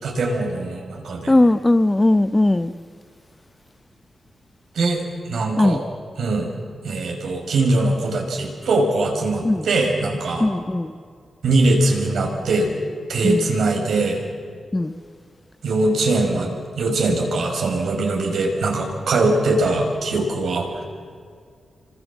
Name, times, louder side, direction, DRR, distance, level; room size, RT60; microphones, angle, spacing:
voice 1, 0.0-1.4 4.7-5.8 6.2-6.5 6.8-10.5 11.4-12.7 13.1-14.2 15.6-20.8, right 2 dB, 85° right, 1 dB, 5.5 m, -21 dB
voice 2, 1.3-2.7 5.6-5.8 9.5-9.6 10.4-10.9 13.2-13.4 14.7-14.9, left 2 dB, 15° left, 13 dB, 0.7 m, -18 dB
29.0 x 25.0 x 7.3 m, 2.1 s
wide cardioid pair, 125°, 0 cm